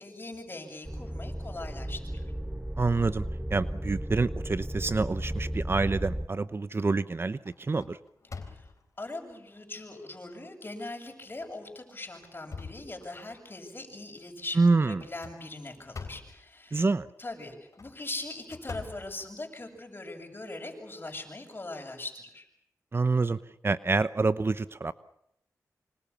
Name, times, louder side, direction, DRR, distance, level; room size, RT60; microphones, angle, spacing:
voice 1, 0.0-2.3 8.3-8.7 9.0-16.9 17.2-22.5, left 2 dB, 35° left, 4 dB, 7.6 m, -41 dB
sound 1, 0.8-6.3, equal, 5° right, 1.1 m, -34 dB
voice 2, 2.8-8.0 14.6-15.0 16.7-17.1 22.9-23.4 23.6-24.9, right 3 dB, 40° right, 14 dB, 0.9 m, -27 dB
sound 2, 6.1-6.4 6.9-7.1 7.5-9.0 9.7-9.8 10.3-10.4 11.3-11.5 12.0-13.5 15.0-16.4 17.6-19.8, left 4 dB, 60° left, 3.8 m, -45 dB
26.5 x 25.5 x 7.2 m, 0.77 s
cardioid pair, 60°, 6 cm